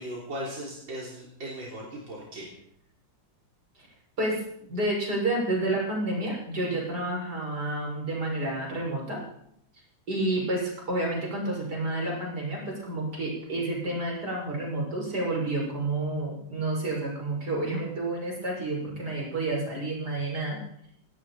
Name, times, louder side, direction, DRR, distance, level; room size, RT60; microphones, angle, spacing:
voice 1, 0.0-2.5, right 1 dB, 85° right, -4 dB, 4.4 m, -38 dB
voice 2, 4.7-9.2 10.1-20.6, right 2 dB, 60° right, -2 dB, 6.8 m, -30 dB
19.0 x 18.0 x 4.3 m, 0.72 s
omnidirectional pair, 2.0 m